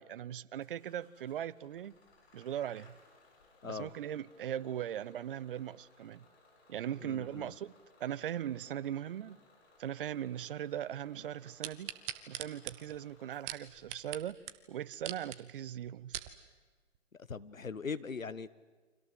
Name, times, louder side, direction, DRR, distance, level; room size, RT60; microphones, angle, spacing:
voice 1, 0.0-1.9 2.3-2.9 3.6-6.2 6.7-7.7 8.0-9.4 9.8-11.9 12.3-14.4 14.7-16.2, right 10 dB, 45° right, 19 dB, 0.9 m, -39 dB
Bus / Engine starting, 0.6-16.8, left 3 dB, 50° left, 7.1 m, -65 dB
voice 2, 3.6-3.9 7.0-7.5 17.1-18.5, left 5 dB, 90° left, 16 dB, 1.4 m, -41 dB
sound 1, 11.6-14.2 14.5-14.6 14.9-15.4 15.9-16.3 17.0-17.1, right 13 dB, 20° right, 1.0 m, -41 dB
29.5 x 25.0 x 7.8 m, 1.4 s
figure-of-eight pair, 135°, 39 cm